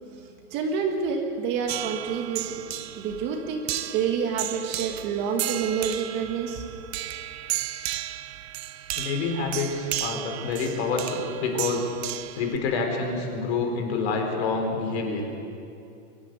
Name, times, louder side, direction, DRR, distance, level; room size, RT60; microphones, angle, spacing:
voice 1, 0.2-2.6 3.0-3.6 3.9-6.6, right 6 dB, 30° right, 3 dB, 1.8 m, -28 dB
sound 1, 1.7-12.6, right 14 dB, 50° right, 0.8 m, -34 dB
voice 2, 8.9-11.9 12.3-15.3, left 4 dB, 50° left, 3 dB, 4.5 m, -27 dB
23.5 x 13.0 x 9.5 m, 2.6 s
supercardioid pair, 170°, 40 cm